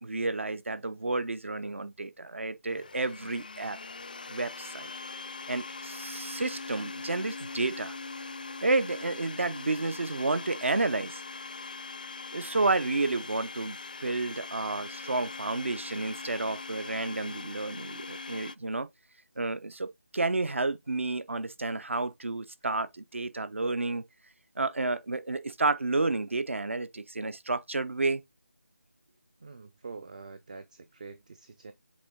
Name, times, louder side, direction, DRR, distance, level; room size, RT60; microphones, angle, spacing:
voice 1, 0.0-3.8 4.3-4.9 5.5-8.0 8.6-11.2 12.3-18.9 19.4-24.0 24.6-28.2, right 3 dB, 55° right, 0.8 m, -31 dB
Domestic sounds home sounds, 2.7-18.6, left 4 dB, 35° left, 0.3 m, -41 dB
voice 2, 29.4-31.7, right 4 dB, 30° right, 0.5 m, -46 dB
7.6 x 3.7 x 3.7 m
figure-of-eight pair, 160°, 8 cm